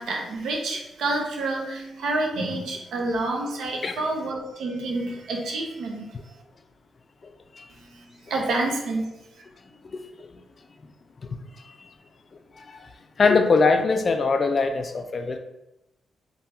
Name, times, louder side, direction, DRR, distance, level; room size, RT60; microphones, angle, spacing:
voice 1, 0.0-6.3 7.7-9.4, right 2 dB, 85° right, 0 dB, 0.6 m, -29 dB
voice 2, 9.9-10.3 11.8-11.9 12.7-12.8 13.2-15.4, left 4 dB, 50° left, 7 dB, 0.3 m, -22 dB
3.3 x 2.1 x 2.7 m, 0.93 s
cardioid pair, 75°, 0 cm